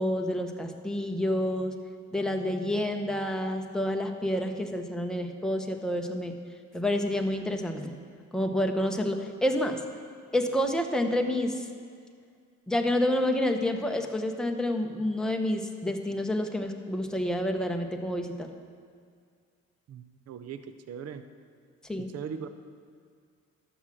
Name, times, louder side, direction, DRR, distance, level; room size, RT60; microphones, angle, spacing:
voice 1, 0.0-1.8 2.1-6.4 6.7-8.0 8.3-9.8 10.3-11.7 12.7-18.5 21.8-22.1, left 1 dB, ahead, 3 dB, 0.9 m, -29 dB
voice 2, 19.9-20.6 20.9-21.2 22.1-22.5, right 7 dB, 55° right, 10 dB, 0.7 m, -39 dB
12.0 x 6.0 x 7.7 m, 2.1 s
cardioid pair, 90°, 30 cm